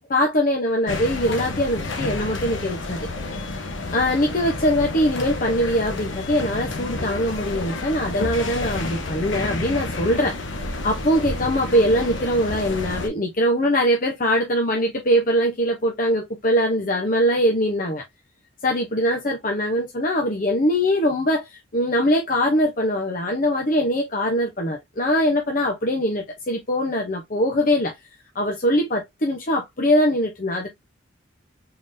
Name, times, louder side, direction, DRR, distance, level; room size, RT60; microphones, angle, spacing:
voice 1, 0.1-3.1 3.9-10.4 10.8-18.0 18.6-27.9 28.3-30.7, equal, 40° left, 0.7 m, -22 dB
sound 1, 0.9-13.1, left 2 dB, 65° left, 1.0 m, -30 dB
3.8 x 3.5 x 2.6 m
head